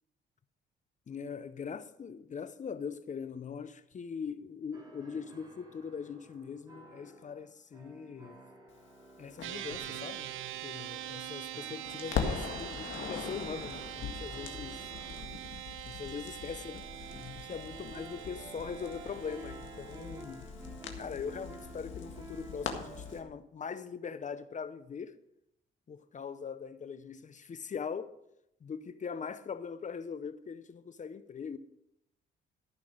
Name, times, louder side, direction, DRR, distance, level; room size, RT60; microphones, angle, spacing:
voice 1, 1.1-8.4 9.2-10.3 10.6-14.9 15.9-20.5 21.0-25.2 25.9-28.1 28.6-31.6, left 6 dB, 40° left, 0.7 m, -41 dB
sound 1, 4.7-15.5 16.6-23.3, right 2 dB, 20° right, 2.9 m, -52 dB
Crackle, 9.4-11.5 11.9-23.2, left 6 dB, 75° left, 1.8 m, -41 dB
sound 2, 9.4-20.2, right 13 dB, 80° right, 0.8 m, -43 dB
14.5 x 6.0 x 6.5 m
cardioid pair, 90°, 20 cm